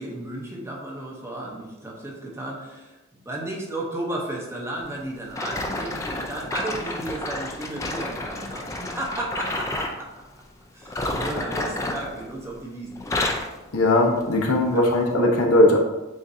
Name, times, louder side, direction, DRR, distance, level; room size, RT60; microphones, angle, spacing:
voice 1, 0.0-10.1 10.7-13.2 14.7-15.0, right 1 dB, 15° right, -3 dB, 0.7 m, -34 dB
sound 1, 5.3-10.0 10.8-12.6 12.9-13.6 14.2-14.4 15.0-15.1, left 2 dB, 15° left, 0.3 m, -30 dB
voice 2, 13.7-15.8, left 1 dB, 85° left, 0 dB, 0.8 m, -19 dB
7.1 x 2.6 x 2.6 m, 1.1 s
head